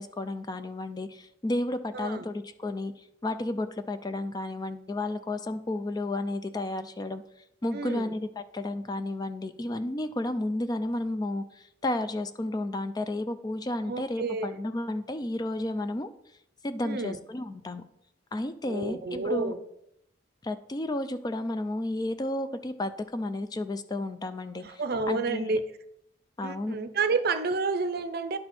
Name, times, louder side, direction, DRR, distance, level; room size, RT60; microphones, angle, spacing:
voice 1, 0.0-7.2 7.6-16.1 16.6-17.8 18.3-19.0 19.2-19.5 20.4-24.8 25.1-25.6 26.4-26.8, left 1 dB, 20° left, 10 dB, 0.4 m, -32 dB
voice 2, 1.9-2.2 7.7-8.1 13.9-14.6 16.8-17.2 18.6-19.6 24.6-25.6 26.4-28.4, right 3 dB, 55° right, 10 dB, 0.6 m, -30 dB
10.5 x 4.3 x 4.3 m, 0.79 s
head